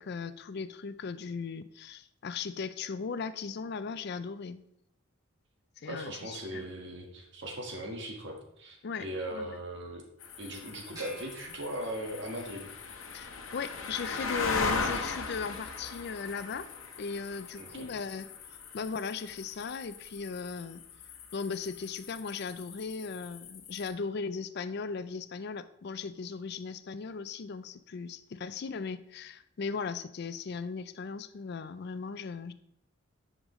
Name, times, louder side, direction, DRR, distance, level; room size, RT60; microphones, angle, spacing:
voice 1, 0.0-4.6 5.8-6.6 8.8-9.6 13.1-16.7 17.0-18.3 18.7-20.8 21.3-32.5, left 5 dB, 55° left, 13 dB, 0.4 m, -37 dB
voice 2, 5.8-10.0 10.4-12.7 17.5-17.9, right 1 dB, 60° right, 1 dB, 1.5 m, -39 dB
sound 1, 10.2-23.9, left 4 dB, 80° left, 1.0 m, -39 dB
sound 2, 10.9-12.4, right 1 dB, 20° right, 2.3 m, -50 dB
9.8 x 5.1 x 3.1 m, 0.78 s
head